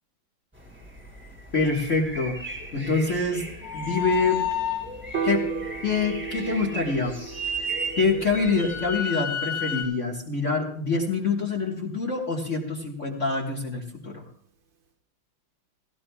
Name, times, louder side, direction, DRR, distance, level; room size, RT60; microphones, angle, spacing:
sound 1, 0.5-9.0, right 1 dB, 5° right, 1.6 m, -39 dB
voice 1, 1.5-3.5 3.7-4.4 5.2-5.5 5.8-7.2 8.0-14.2, left 4 dB, 40° left, -1 dB, 1.8 m, -26 dB
sound 2, 3.6-5.0 7.3-9.8, left 4 dB, 75° left, 3.2 m, -30 dB
Piano, 5.1-11.4, right 6 dB, 70° right, 2.2 m, -37 dB
18.5 x 16.5 x 2.3 m, 0.63 s
omnidirectional pair, 2.2 m